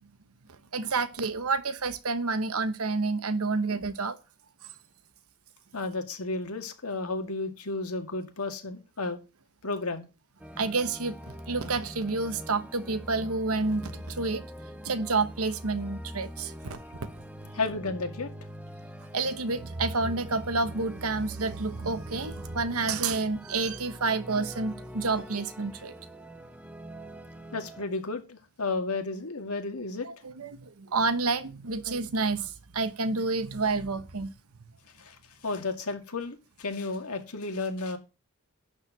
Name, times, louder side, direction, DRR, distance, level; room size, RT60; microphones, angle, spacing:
voice 1, 0.7-4.2 10.6-14.4 14.8-16.8 19.1-25.9 30.0-34.3, right 3 dB, 70° right, 1.1 m, -29 dB
voice 2, 5.7-9.2 9.6-10.1 17.5-18.3 27.5-30.1 35.0-38.0, left 3 dB, 75° left, 2.0 m, -33 dB
sound 1, 10.4-27.9, equal, 5° right, 0.8 m, -44 dB
11.5 x 4.6 x 8.0 m
head